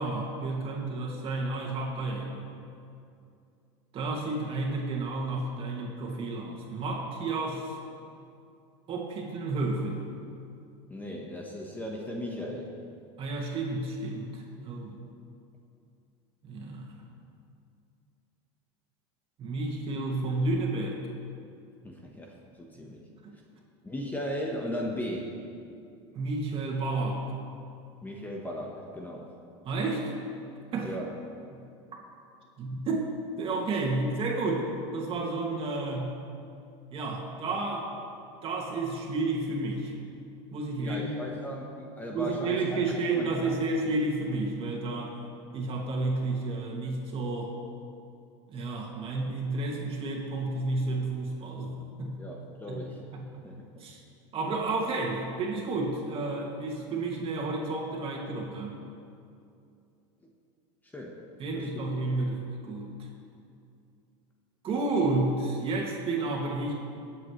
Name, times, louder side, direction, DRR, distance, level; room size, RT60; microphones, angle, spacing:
voice 1, 0.0-2.4 3.9-7.8 8.9-10.0 13.2-15.0 16.4-17.0 19.4-21.0 22.8-22.9 23.2-23.4 26.1-27.3 29.6-30.1 30.7-30.9 32.6-33.1 33.4-36.1 36.9-37.9 38.4-39.9 40.5-41.1 42.1-45.2 45.5-47.6 48.5-52.2 52.7-52.8 53.1-53.5 53.8-54.0 54.3-58.8 61.4-63.1 64.6-66.7, right 2 dB, 40° right, -1 dB, 2.3 m, -31 dB
voice 2, 10.9-12.7 21.8-23.0 23.8-25.5 28.0-29.3 30.8-31.0 40.8-43.5 52.2-53.1 53.4-53.6 60.9-61.3 61.5-61.8, equal, 10° left, -1 dB, 1.3 m, -37 dB
20.0 x 7.9 x 3.3 m, 2.5 s
supercardioid pair, 115°, 15 cm